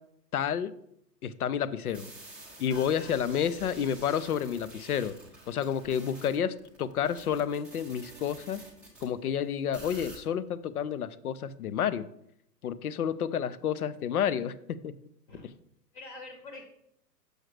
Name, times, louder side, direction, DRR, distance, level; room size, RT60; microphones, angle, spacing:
voice 1, 0.3-0.7 1.2-2.1 2.6-5.1 5.5-8.6 9.0-12.1 12.6-14.9, left 8 dB, 60° left, 15 dB, 0.6 m, -30 dB
sound 1, 1.9-9.1 9.7-10.2, right 2 dB, ahead, 0.6 m, -49 dB
voice 2, 2.7-3.2 15.3-15.5 15.9-16.6, left 2 dB, 30° left, 4 dB, 1.0 m, -46 dB
6.5 x 6.3 x 3.2 m, 0.73 s
figure-of-eight pair, 120°, 50 cm